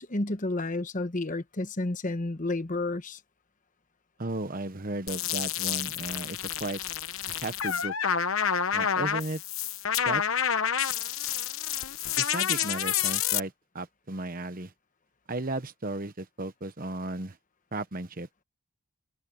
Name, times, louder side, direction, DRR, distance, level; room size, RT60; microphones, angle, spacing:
voice 1, 0.0-3.2, left 2 dB, 35° left, 1.1 m, -31 dB
voice 2, 4.2-6.8 7.3-7.9 8.7-9.4 10.0-10.2 12.2-14.7 15.3-17.4 17.7-18.3, right 2 dB, 40° right, 1.1 m, -35 dB
sound 1, 5.1-13.4, left 8 dB, 65° left, 1.1 m, -29 dB
head